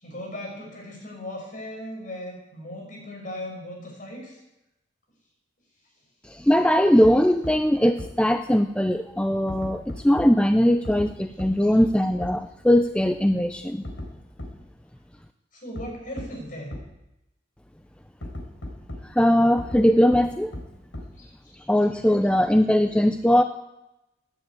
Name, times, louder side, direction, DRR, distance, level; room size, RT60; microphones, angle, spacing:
voice 1, 0.0-4.4 15.5-16.8 21.2-21.7, left 1 dB, 45° left, 0 dB, 6.1 m, -38 dB
voice 2, 6.2-13.8 19.0-20.5 21.7-23.4, equal, 5° left, 8 dB, 0.5 m, -20 dB
sound 1, 7.0-7.1 7.4-7.5 8.0-8.1 9.5-10.3 10.8-11.1 11.4-11.5 11.8-11.9 12.2-12.3 13.8-14.1 14.4-14.5 15.8-15.9 16.2-16.3 16.7-16.8 18.2-19.0 19.6-19.8 20.1-20.2 20.5-20.6 20.9-21.0, left 1 dB, 80° left, 4.2 m, -35 dB
16.0 x 10.0 x 8.3 m, 0.90 s
head